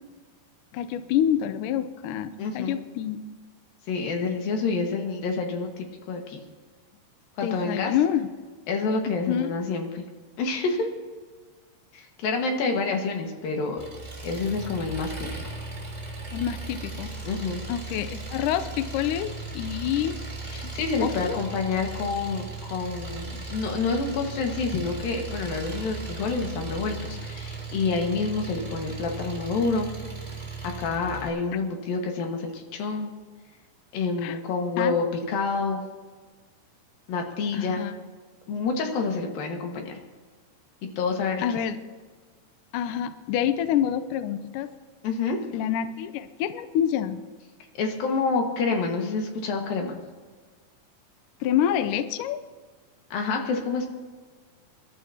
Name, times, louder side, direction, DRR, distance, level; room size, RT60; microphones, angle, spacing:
voice 1, 0.7-3.3 7.4-8.3 9.3-9.5 16.3-17.1 17.7-20.2 21.0-21.4 34.2-34.4 34.8-34.9 37.5-37.9 41.4-41.8 42.7-44.7 45.5-47.2 51.4-52.4, left 10 dB, 90° left, 11 dB, 1.8 m, -27 dB
voice 2, 2.4-2.7 3.9-6.4 7.4-7.9 8.7-10.0 10.4-10.9 11.9-13.8 14.2-15.3 17.2-17.6 20.5-29.9 30.6-33.1 33.9-35.8 37.1-37.8 38.5-40.0 41.0-41.4 45.0-45.4 47.7-50.0 53.1-53.9, left 4 dB, 65° left, 2 dB, 3.3 m, -28 dB
Engine, 13.8-31.3, right 3 dB, 10° right, 2.9 m, -37 dB
25.5 x 12.0 x 2.9 m, 1.5 s
omnidirectional pair, 4.6 m